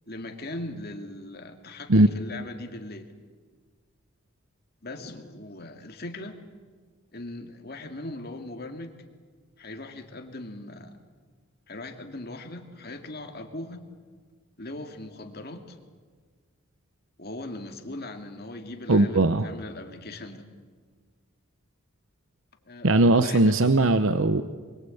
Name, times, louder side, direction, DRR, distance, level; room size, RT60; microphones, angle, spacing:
voice 1, 0.1-3.1 4.8-6.4 7.1-9.0 9.6-11.0 11.7-13.9 14.6-15.8 17.2-20.5 22.6-23.6, left 2 dB, 45° left, 4 dB, 2.4 m, -39 dB
voice 2, 18.9-19.5 22.8-24.4, right 2 dB, 65° right, 10 dB, 0.8 m, -19 dB
25.0 x 23.0 x 8.5 m, 1.6 s
head